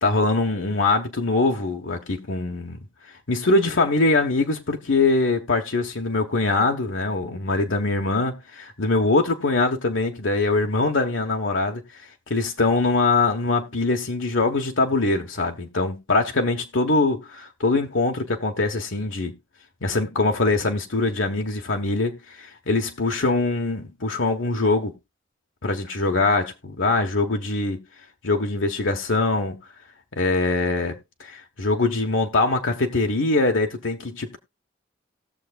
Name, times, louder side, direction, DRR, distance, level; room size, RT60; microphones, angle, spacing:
voice 1, 0.0-2.8 3.3-11.8 12.3-19.3 19.8-24.9 25.6-27.8 28.2-29.6 30.2-30.9 31.2-34.4, left 3 dB, 80° left, 1.2 m, -23 dB
19.0 x 6.9 x 2.4 m
head